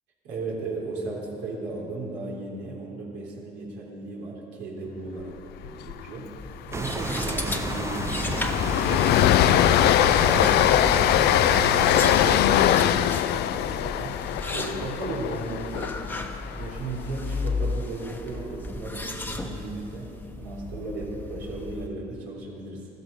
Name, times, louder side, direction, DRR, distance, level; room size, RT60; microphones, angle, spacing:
voice 1, 0.2-6.3 6.7-10.5 10.8-11.3 11.9-14.2 14.5-22.9, right 3 dB, 90° right, -4 dB, 3.6 m, -36 dB
Train, 5.6-5.9 6.2-6.4 6.7-16.9, left 12 dB, 75° left, 0.5 m, -22 dB
sound 1, 6.4-21.9, left 3 dB, 10° left, 1.1 m, -35 dB
sound 2, 6.7-12.4, right 3 dB, 15° right, 0.6 m, -32 dB
15.0 x 13.5 x 5.3 m, 2.6 s
cardioid pair, 110°, 17 cm